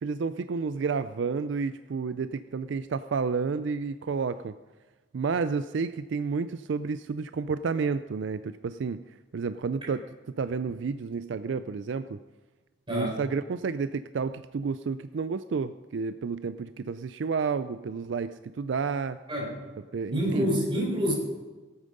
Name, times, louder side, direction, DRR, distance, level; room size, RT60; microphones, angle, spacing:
voice 1, 0.0-4.5 5.1-9.0 9.3-10.0 10.4-12.2 12.9-19.2 19.9-20.6, right 5 dB, 70° right, 12 dB, 0.4 m, -30 dB
voice 2, 12.9-13.2 19.3-19.5 20.1-21.1, equal, 25° right, -4 dB, 4.2 m, -27 dB
17.0 x 8.8 x 5.3 m, 1.3 s
head